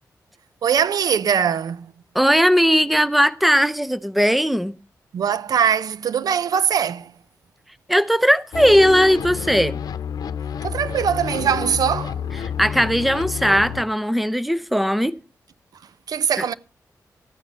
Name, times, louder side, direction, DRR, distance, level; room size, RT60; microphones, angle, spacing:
voice 1, 0.6-1.9 5.1-7.1 10.6-12.2 16.1-16.5, right 8 dB, 80° right, 0.6 m, -21 dB
voice 2, 2.1-4.8 7.9-9.8 12.6-15.1, equal, ahead, 0.6 m, -18 dB
sound 1, 8.5-13.8, left 7 dB, 85° left, 0.8 m, -29 dB
14.5 x 9.1 x 5.5 m
wide cardioid pair, 165°, 6 cm